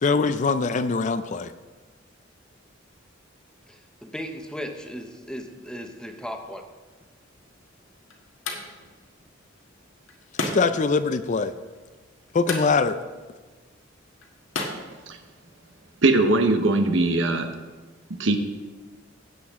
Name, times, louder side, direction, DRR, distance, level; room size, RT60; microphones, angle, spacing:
voice 1, 0.0-1.5 10.5-11.5 12.3-13.0, left 4 dB, 40° left, 0.4 m, -22 dB
voice 2, 3.7-6.7, equal, 5° left, 0.9 m, -36 dB
sound 1, 7.2-15.7, left 3 dB, 85° left, 1.5 m, -37 dB
voice 3, 16.0-17.5 18.1-18.4, right 2 dB, 70° right, 1.0 m, -20 dB
15.0 x 8.2 x 3.6 m
head